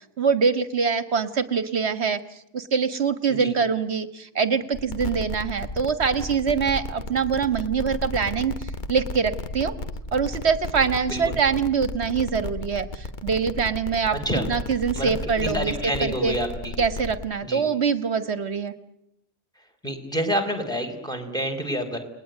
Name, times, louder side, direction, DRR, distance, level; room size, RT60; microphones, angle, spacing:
voice 1, 0.2-2.2 2.5-8.5 8.9-9.8 10.1-14.2 14.5-16.3 16.8-18.7, right 6 dB, 60° right, 12 dB, 1.8 m, -24 dB
sound 1, 4.7-17.2, left 2 dB, 40° left, 1.3 m, -34 dB
voice 2, 14.1-14.5 14.9-15.1 15.4-16.7 17.4-17.6 19.8-22.0, equal, 5° left, 4 dB, 4.5 m, -28 dB
29.5 x 20.5 x 9.4 m, 0.83 s
omnidirectional pair, 1.3 m